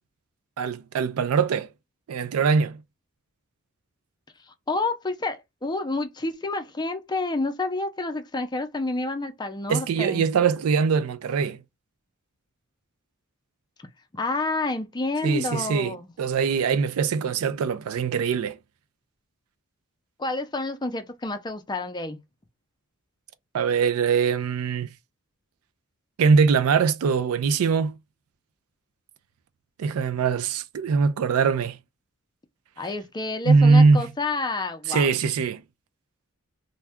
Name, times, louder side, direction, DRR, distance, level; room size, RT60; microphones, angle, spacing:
voice 1, 0.6-1.7 2.1-2.8 9.7-11.6 15.2-18.6 23.5-24.9 26.2-28.0 29.8-31.8 33.5-34.0 34.9-35.6, right 5 dB, 75° right, 0.4 m, -22 dB
voice 2, 4.7-10.3 14.1-16.1 20.2-22.2 32.8-35.1, left 2 dB, 20° left, 0.5 m, -29 dB
2.6 x 2.3 x 3.4 m
head